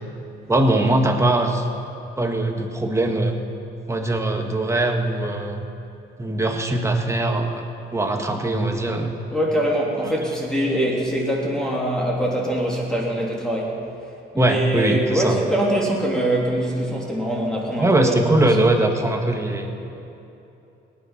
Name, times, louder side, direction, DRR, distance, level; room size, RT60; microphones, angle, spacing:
voice 1, 0.5-1.7 2.2-3.3 3.9-5.6 6.2-7.6 7.9-9.1 14.4-15.4 17.8-19.7, right 2 dB, 15° right, 3 dB, 1.6 m, -21 dB
voice 2, 9.3-13.8 14.3-18.2, right 1 dB, 5° left, -3 dB, 3.1 m, -23 dB
18.0 x 9.9 x 5.9 m, 2.9 s
cardioid pair, 90°, 20 cm